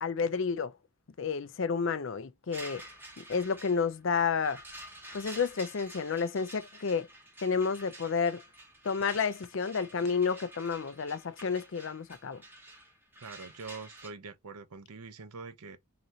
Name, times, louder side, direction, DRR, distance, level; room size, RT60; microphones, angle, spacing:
voice 1, 0.0-0.7 1.2-2.8 3.2-4.6 5.1-7.1 7.4-8.4 8.8-12.4, left 5 dB, 55° left, 0.5 m, -30 dB
sound 1, 2.5-14.1, right 1 dB, 10° right, 1.1 m, -49 dB
voice 2, 13.2-15.8, right 4 dB, 90° right, 0.7 m, -44 dB
3.9 x 2.8 x 3.0 m
head